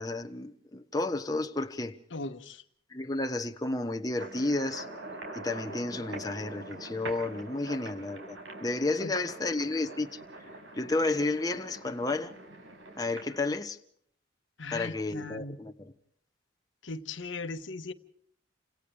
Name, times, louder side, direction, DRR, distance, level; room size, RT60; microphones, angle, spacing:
voice 1, 0.0-2.0 2.9-4.9 5.3-10.2 10.8-12.4 13.0-13.8 14.7-15.9, left 2 dB, 20° left, 1.0 m, -32 dB
voice 2, 2.1-2.6 9.0-9.1 14.6-15.6 16.8-17.9, left 3 dB, 70° left, 1.4 m, -38 dB
sound 1, 4.2-13.4, right 2 dB, 75° right, 5.9 m, -44 dB
30.0 x 27.0 x 3.4 m
head